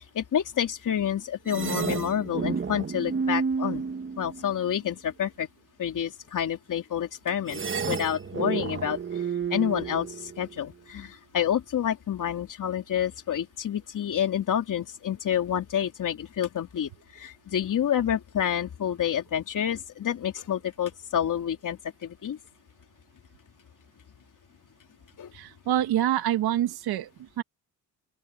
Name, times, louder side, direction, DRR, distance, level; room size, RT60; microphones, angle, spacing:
voice 1, 0.0-3.8 4.2-5.5 5.8-7.6 7.9-9.2 9.5-22.4 25.2-25.3, left 9 dB, 55° left, 3.4 m, -28 dB
sound 1, 1.5-4.7 7.5-10.6, right 5 dB, 35° right, 1.8 m, -31 dB
voice 2, 25.3-27.4, right 12 dB, 85° right, 2.4 m, -26 dB
open air
cardioid pair, 95°, 37 cm